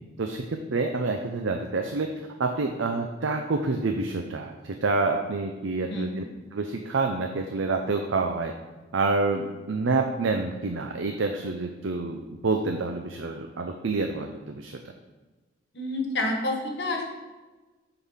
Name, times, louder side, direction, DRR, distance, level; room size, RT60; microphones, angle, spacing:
voice 1, 0.2-2.1 2.4-6.2 6.5-8.5 8.9-14.8, right 3 dB, 75° right, 4 dB, 0.6 m, -28 dB
voice 2, 15.7-17.0, left 2 dB, 55° left, 2 dB, 1.3 m, -28 dB
8.1 x 3.9 x 5.6 m, 1.2 s
head